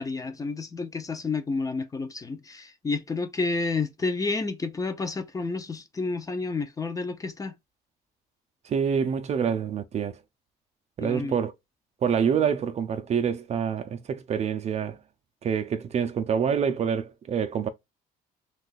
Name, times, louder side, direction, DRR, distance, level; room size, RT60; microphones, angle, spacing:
voice 1, 0.0-7.5 11.0-11.4, left 3 dB, 20° left, 0.5 m, -30 dB
voice 2, 8.7-10.1 11.0-11.5 12.0-15.0 15.4-17.7, right 7 dB, 40° right, 0.4 m, -26 dB
2.7 x 2.3 x 3.8 m
cardioid pair, 110°, 17 cm